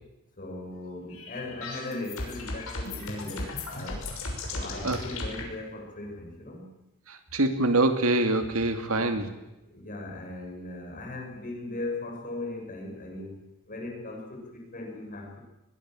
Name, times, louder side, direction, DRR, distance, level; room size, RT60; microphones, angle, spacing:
voice 1, 0.4-4.1 4.5-6.7 8.9-9.4 9.7-15.4, left 2 dB, 40° left, 1 dB, 6.7 m, -38 dB
sound 1, 1.1-5.4, left 2 dB, 65° left, 6.2 m, -35 dB
voice 2, 7.3-9.2, right 2 dB, 70° right, 8 dB, 2.2 m, -24 dB
23.0 x 20.5 x 7.6 m, 0.93 s
head